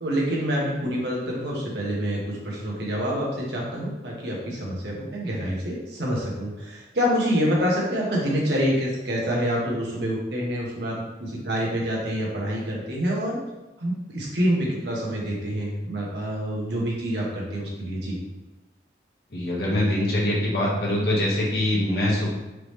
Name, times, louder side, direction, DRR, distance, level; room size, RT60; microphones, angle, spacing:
voice 1, 0.0-13.4 13.8-18.2, equal, 75° right, -4 dB, 1.3 m, -27 dB
voice 2, 19.3-22.3, left 1 dB, 60° left, -6 dB, 1.4 m, -23 dB
4.8 x 3.4 x 3.2 m, 1.1 s
head